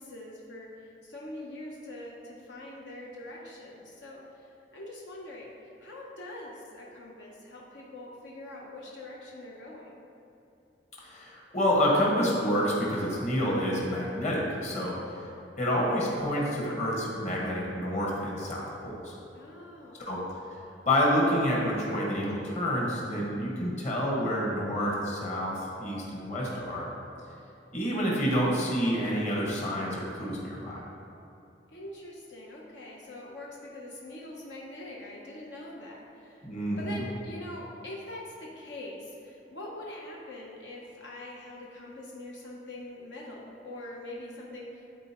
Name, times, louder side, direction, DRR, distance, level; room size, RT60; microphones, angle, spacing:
voice 1, 0.0-9.9 19.3-20.0 31.7-36.4 36.8-44.8, left 1 dB, 80° left, -3 dB, 0.9 m, -43 dB
voice 2, 11.0-15.0 15.6-19.1 20.0-20.2 20.8-26.9 27.7-30.8 36.4-37.0, equal, 40° left, -4 dB, 1.5 m, -28 dB
12.0 x 4.1 x 3.0 m, 2.8 s
head